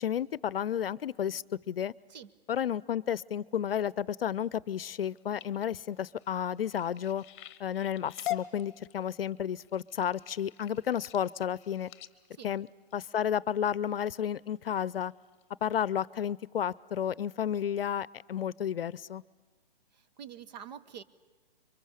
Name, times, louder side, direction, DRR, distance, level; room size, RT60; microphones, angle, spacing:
voice 1, 0.0-1.9 2.5-7.2 7.6-11.9 12.4-12.7 12.9-15.1 15.6-19.2, left 9 dB, 75° left, 22 dB, 0.6 m, -32 dB
sound 1, 5.0-13.7 14.3-14.6 15.0-15.4 15.9-16.0 16.3-16.4, left 14 dB, 30° left, 1.0 m, -43 dB
voice 2, 19.9-21.0, right 8 dB, 45° right, 13 dB, 1.0 m, -46 dB
26.5 x 23.5 x 6.5 m, 1.3 s
hypercardioid pair, 140°, 29 cm